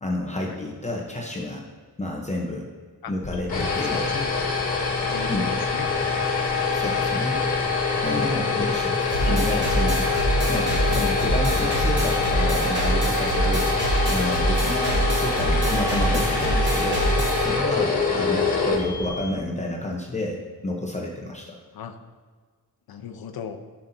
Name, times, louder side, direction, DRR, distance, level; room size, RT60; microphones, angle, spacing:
voice 1, 0.0-1.6 2.0-2.7 3.1-4.1 5.3-5.5 6.7-7.5 8.0-21.6, left 1 dB, 20° left, -1 dB, 0.7 m, -30 dB
sound 1, 3.2-19.4, left 4 dB, 55° left, 1.6 m, -25 dB
voice 2, 3.9-4.3 5.1-6.3 10.9-11.0 14.9-15.0 18.1-18.3 18.6-18.7 21.7-22.0 22.9-23.6, left 7 dB, 80° left, 7 dB, 0.7 m, -37 dB
sound 2, 9.1-17.5, right 1 dB, 30° right, 1.6 m, -25 dB
12.5 x 5.6 x 2.7 m, 1.5 s
wide cardioid pair, 165°, 36 cm